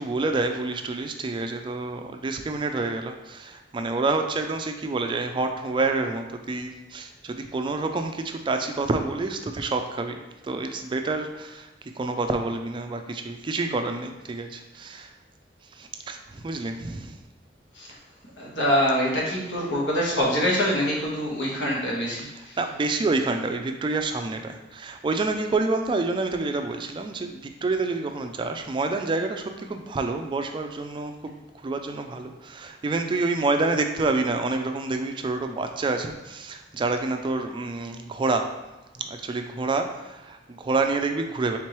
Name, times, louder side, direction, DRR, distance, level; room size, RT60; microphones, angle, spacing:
voice 1, 0.0-15.1 15.7-17.2 22.2-38.4 38.9-41.6, right 3 dB, 25° right, 5 dB, 0.3 m, -28 dB
voice 2, 18.4-22.6, equal, 75° left, -4 dB, 1.3 m, -25 dB
4.5 x 3.6 x 3.0 m, 1.0 s
head